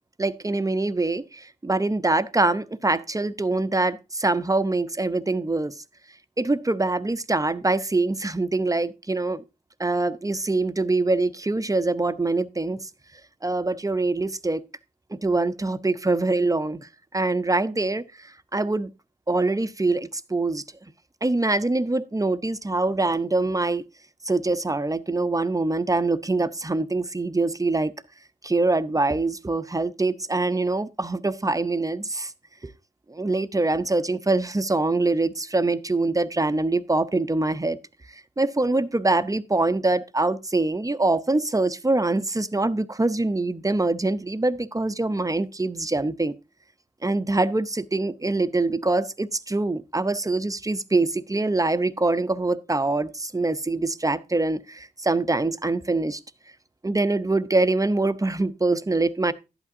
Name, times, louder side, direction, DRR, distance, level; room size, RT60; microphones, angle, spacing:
voice 1, 0.2-5.7 6.4-9.4 9.8-12.9 13.4-14.6 15.1-18.0 18.5-18.9 19.3-20.6 21.2-23.8 24.3-27.9 28.4-32.3 32.6-32.7 33.1-37.8 38.4-46.3 47.0-56.2 56.8-59.3, right 2 dB, 20° right, 0.7 m, -24 dB
11.5 x 8.5 x 2.7 m
cardioid pair, 50°, 17 cm